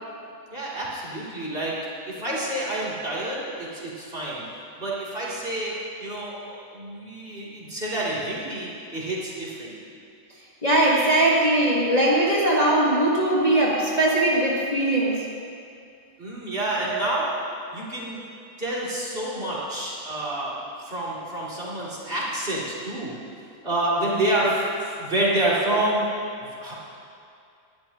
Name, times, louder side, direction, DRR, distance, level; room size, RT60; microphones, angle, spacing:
voice 1, 0.5-1.7 2.1-4.4 4.8-10.0 16.2-17.3 17.7-18.2 18.6-23.1 23.6-26.1 26.4-26.7, right 1 dB, 40° right, -8 dB, 3.1 m, -28 dB
voice 2, 10.6-15.2 16.9-17.1, right 1 dB, 30° left, -6 dB, 1.5 m, -20 dB
19.5 x 12.0 x 2.9 m, 2.5 s
omnidirectional pair, 1.5 m